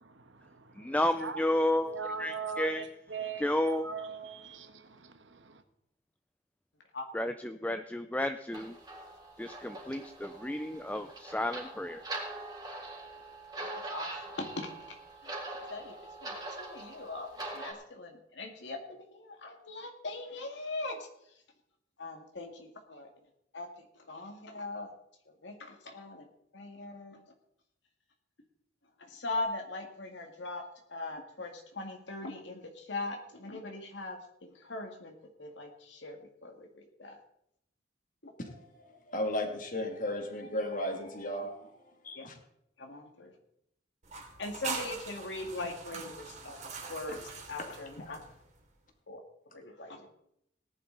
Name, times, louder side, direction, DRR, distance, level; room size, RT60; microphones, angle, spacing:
voice 1, 0.2-5.6, right 6 dB, 90° right, 1.4 m, -41 dB
voice 2, 0.7-2.9 3.4-3.9 7.1-8.8 9.4-12.2, left 1 dB, 10° left, 0.5 m, -32 dB
sound 1, 8.5-17.7, right 2 dB, 20° right, 3.7 m, -43 dB
voice 3, 13.6-15.0 15.7-16.0 16.2-21.1 22.0-23.1 23.5-24.9 25.3-26.3 26.5-27.2 29.0-30.6 30.9-37.2 38.2-38.3 42.1-42.3 42.8-43.3 44.4-46.6 46.9-47.2 47.5-48.2 49.1-49.2 49.5-50.1, left 2 dB, 75° left, 2.0 m, -41 dB
voice 4, 38.4-41.7 42.0-42.4 47.1-47.2 47.6-47.7 48.1-48.2, left 1 dB, 45° left, 2.4 m, -35 dB
sound 2, 44.0-48.6, right 4 dB, 40° right, 2.8 m, -42 dB
18.5 x 11.0 x 3.9 m
head